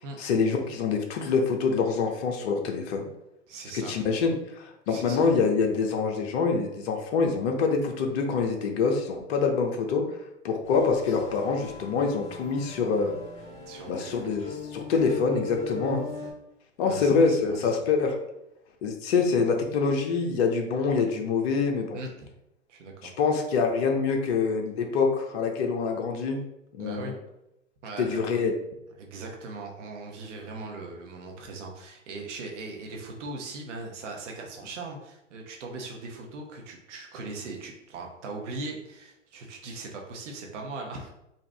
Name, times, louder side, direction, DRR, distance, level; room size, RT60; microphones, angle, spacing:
voice 1, 0.2-3.0 3.7-10.2 10.4-13.2 13.9-14.4 14.7-16.0 16.8-18.2 18.8-22.0 23.0-26.4 26.8-27.1 28.0-28.5, left 5 dB, 50° left, 3 dB, 0.8 m, -25 dB
voice 2, 3.5-3.9 4.9-5.3 13.7-14.3 16.8-17.7 21.9-22.3 22.7-23.1 26.8-27.1 27.8-28.2 29.0-41.1, right 3 dB, 65° right, 1 dB, 1.1 m, -39 dB
sound 1, 10.6-16.3, left 3 dB, 15° left, 1.4 m, -39 dB
4.0 x 2.4 x 3.4 m, 0.86 s
hypercardioid pair, 115°, 39 cm